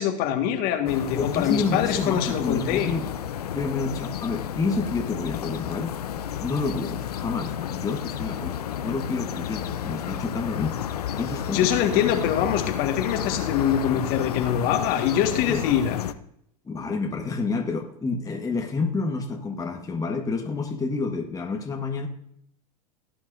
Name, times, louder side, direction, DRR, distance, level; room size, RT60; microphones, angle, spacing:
voice 1, 0.0-2.9 11.5-16.0, left 9 dB, 50° left, 5 dB, 1.8 m, -24 dB
sound 1, 0.9-16.1, left 9 dB, 85° left, 0.7 m, -31 dB
voice 2, 1.1-3.1 3.5-10.8 11.1-11.7 15.5-15.6 16.6-22.1, left 4 dB, 20° left, 3 dB, 1.5 m, -29 dB
17.0 x 9.4 x 2.7 m, 0.71 s
hypercardioid pair, 90°, 19 cm